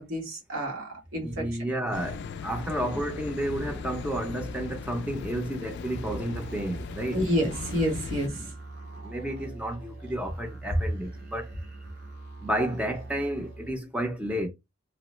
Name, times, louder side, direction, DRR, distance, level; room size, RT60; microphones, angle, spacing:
voice 1, 0.0-1.7 2.9-3.0 7.1-8.5, equal, 80° right, 1.4 m, -29 dB
voice 2, 1.2-7.2 9.0-11.7 12.4-14.5, right 1 dB, 5° right, 0.6 m, -31 dB
sound 1, 1.9-8.3, left 4 dB, 55° left, 0.3 m, -38 dB
sound 2, 5.9-13.7, right 2 dB, 55° right, 1.2 m, -43 dB
3.0 x 2.0 x 3.0 m
head